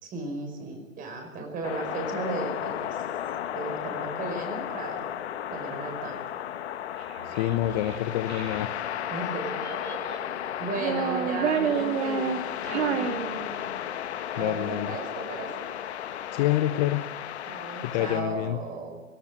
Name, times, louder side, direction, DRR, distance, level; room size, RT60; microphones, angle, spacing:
voice 1, 0.0-3.0 3.5-5.0 5.5-6.2 9.1-9.6 10.6-12.3 12.7-13.2 14.3-15.5 17.5-19.0, right 3 dB, 20° right, 4 dB, 5.2 m, -35 dB
sound 1, 1.6-18.2, left 10 dB, 50° left, 1.5 m, -34 dB
Child speech kid speaking, 7.0-8.7 9.4-10.3 10.7-13.9, right 7 dB, 55° right, 2.8 m, -30 dB
voice 2, 7.3-8.8 14.4-14.9 16.3-17.0 17.8-18.6, left 13 dB, 30° left, 10 dB, 0.9 m, -27 dB
19.0 x 18.5 x 8.7 m, 1.2 s
hypercardioid pair, 130°, 40 cm